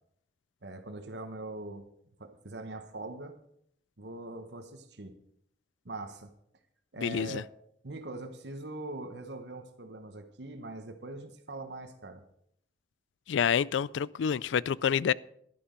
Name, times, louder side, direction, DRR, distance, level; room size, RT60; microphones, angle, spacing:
voice 1, 0.6-1.9 2.2-3.3 4.0-5.2 5.8-6.3 6.9-7.5 7.8-12.2, right 2 dB, 70° right, 1.2 m, -42 dB
voice 2, 7.0-7.4 13.3-15.1, left 7 dB, 85° left, 0.3 m, -28 dB
11.5 x 11.5 x 5.1 m
head